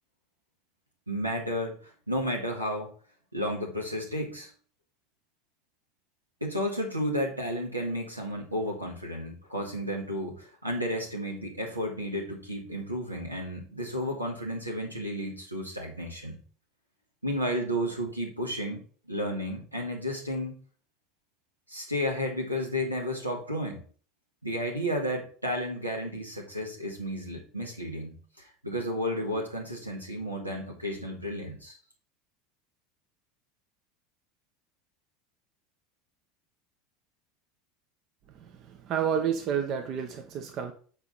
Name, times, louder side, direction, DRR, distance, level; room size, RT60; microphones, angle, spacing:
voice 1, 1.1-2.9 3.3-4.5 6.4-16.4 17.2-20.6 21.7-23.8 24.4-31.8, equal, 90° right, 0 dB, 1.9 m, -32 dB
voice 2, 38.3-40.7, right 8 dB, 45° right, 7 dB, 0.9 m, -30 dB
7.2 x 4.9 x 4.0 m, 0.41 s
figure-of-eight pair, 75°, 0 cm